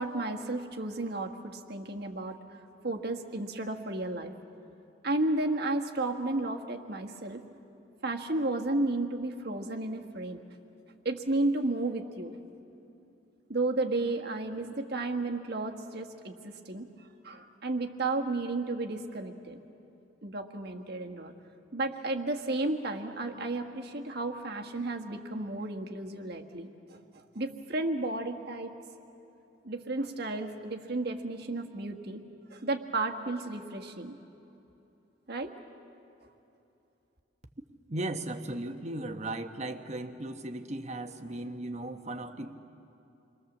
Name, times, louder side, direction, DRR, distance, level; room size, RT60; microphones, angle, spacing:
voice 1, 0.0-2.4 2.8-4.3 5.0-7.4 8.0-10.4 11.0-12.3 13.5-19.6 20.2-21.3 21.7-28.7 29.6-32.2 32.5-34.2 35.3-35.5, right 2 dB, 55° right, 3 dB, 1.6 m, -33 dB
voice 2, 37.9-42.5, right 2 dB, 35° right, 7 dB, 1.2 m, -36 dB
28.5 x 23.0 x 7.4 m, 2.8 s
head